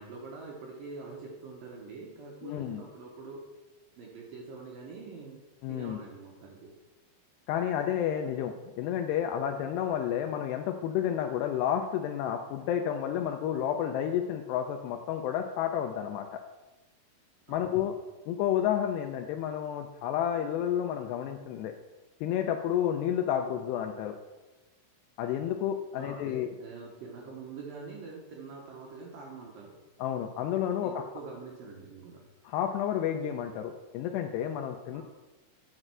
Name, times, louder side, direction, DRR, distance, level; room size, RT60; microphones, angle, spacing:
voice 1, 0.0-3.4 4.0-5.4 5.7-6.7 17.5-17.9 25.9-29.7 30.8-32.2 34.9-35.0, right 4 dB, 70° right, -1 dB, 2.3 m, -45 dB
voice 2, 2.4-2.8 5.6-6.0 7.5-16.4 17.5-17.9 18.3-21.7 22.2-24.2 25.2-26.5 30.0-31.0 32.5-35.0, left 10 dB, 85° left, 6 dB, 2.5 m, -30 dB
9.9 x 5.3 x 6.1 m, 1.1 s
omnidirectional pair, 5.3 m